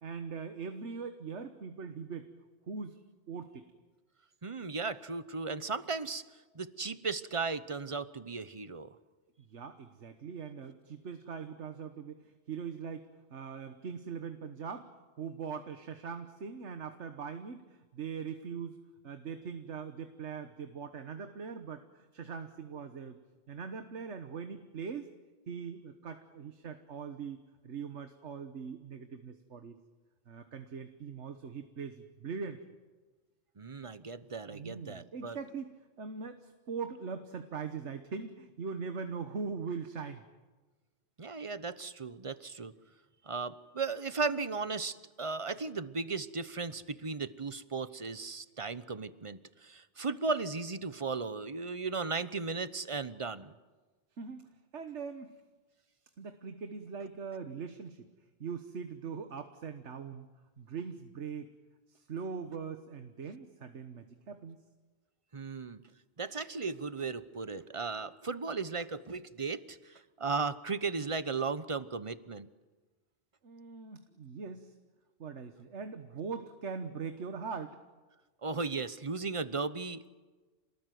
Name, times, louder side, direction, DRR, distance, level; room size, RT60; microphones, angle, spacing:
voice 1, 0.0-2.3 2.7-3.0 3.3-3.6 9.5-14.9 15.2-18.8 19.0-23.2 23.5-25.1 25.5-29.8 30.3-32.6 34.5-40.2 54.2-55.3 56.2-58.1 58.4-60.3 60.6-61.5 61.9-64.6 71.0-71.1 73.4-74.7 75.2-77.8, right 5 dB, 85° right, 7 dB, 1.6 m, -41 dB
voice 2, 4.4-6.2 6.5-9.0 33.6-35.4 41.2-42.7 43.2-53.5 65.3-65.8 66.2-72.5 78.4-80.1, right 4 dB, 30° right, 14 dB, 0.9 m, -36 dB
28.0 x 19.5 x 9.3 m, 1.3 s
omnidirectional pair, 1.2 m